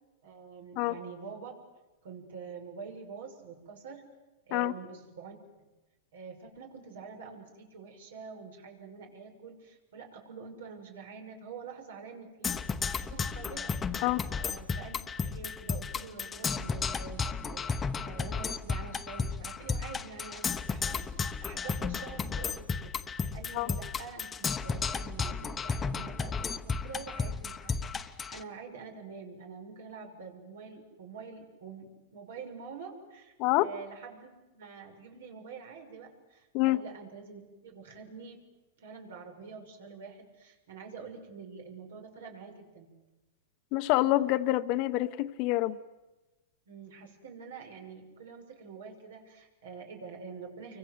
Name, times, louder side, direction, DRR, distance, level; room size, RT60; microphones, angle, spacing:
voice 1, 0.2-1.5 2.0-4.1 4.5-5.4 6.1-14.0 14.4-38.4 38.8-42.9 46.7-50.8, right 5 dB, 80° right, 6.3 m, -46 dB
Percussion, 12.4-28.4, left 5 dB, 15° left, 1.0 m, -33 dB
voice 2, 43.7-45.8, left 17 dB, 45° left, 0.9 m, -26 dB
29.5 x 24.5 x 8.0 m
supercardioid pair, 140°, 0 cm